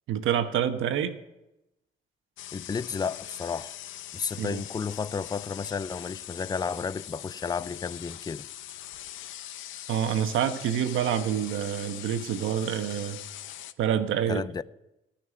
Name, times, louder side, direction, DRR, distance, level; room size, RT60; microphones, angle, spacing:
voice 1, 0.1-1.1 4.4-4.6 9.9-13.2 13.8-14.4, right 9 dB, 80° right, 1.3 m, -27 dB
sound 1, 2.4-13.7, left 12 dB, 80° left, 0.7 m, -42 dB
voice 2, 2.5-3.8 4.1-8.5 14.3-14.6, left 5 dB, 20° left, 0.5 m, -32 dB
17.5 x 5.9 x 9.8 m
cardioid pair, 90°, 20 cm